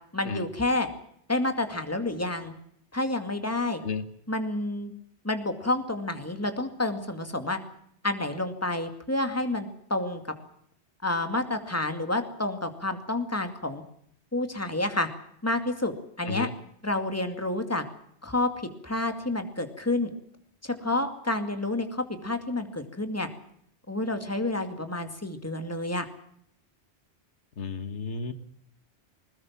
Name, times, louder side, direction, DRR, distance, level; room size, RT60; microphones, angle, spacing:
voice 1, 0.1-0.9 1.3-2.5 2.9-3.8 4.3-4.9 5.2-7.6 8.0-10.2 11.0-13.8 14.3-15.1 15.4-16.5 16.8-17.8 18.2-18.5 18.8-20.1 20.6-23.3 23.9-26.1, left 2 dB, 15° left, 7 dB, 2.3 m, -29 dB
voice 2, 27.6-28.3, left 5 dB, 90° left, 11 dB, 1.7 m, -32 dB
21.0 x 20.5 x 7.3 m, 0.70 s
omnidirectional pair, 1.2 m